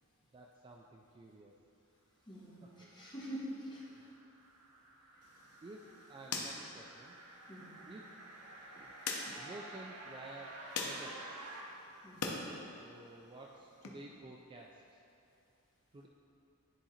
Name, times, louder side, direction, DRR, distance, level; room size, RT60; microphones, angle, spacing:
voice 1, 0.3-1.5 2.6-2.9 3.9-4.1 5.6-7.2 7.8-8.1 8.8-9.0 9.3-11.2 12.7-15.0 15.9-16.1, right 2 dB, 20° right, 0 dB, 0.3 m, -52 dB
voice 2, 2.3-3.9 7.5-7.8 12.0-12.4, equal, 20° left, -7 dB, 1.5 m, -45 dB
sound 1, 3.3-11.6, right 2 dB, 80° right, 0.9 m, -52 dB
sound 2, 5.2-12.4 12.8-13.9, left 4 dB, 90° left, 0.8 m, -45 dB
10.0 x 3.8 x 4.2 m, 2.7 s
head